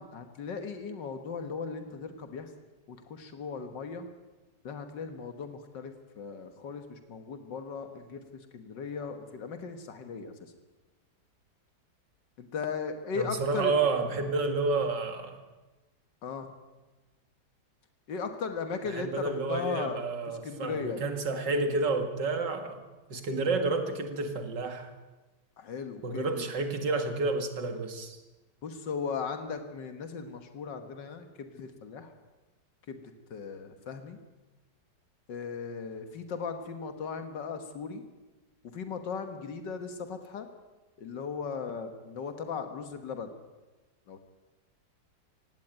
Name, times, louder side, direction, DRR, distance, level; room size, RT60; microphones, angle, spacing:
voice 1, 0.0-2.5 2.9-4.1 4.6-8.2 8.5-10.3 12.4-13.7 16.2-16.5 18.1-21.0 25.6-26.5 28.6-32.1 32.9-33.0 33.3-34.2 35.3-38.0 38.6-40.5 41.0-43.3 44.1-44.2, left 5 dB, 90° left, 2.1 m, -37 dB
voice 2, 13.2-15.4 18.9-22.8 23.1-24.9 26.0-28.2, right 3 dB, 90° right, 2.6 m, -30 dB
18.0 x 16.5 x 9.0 m
omnidirectional pair, 1.9 m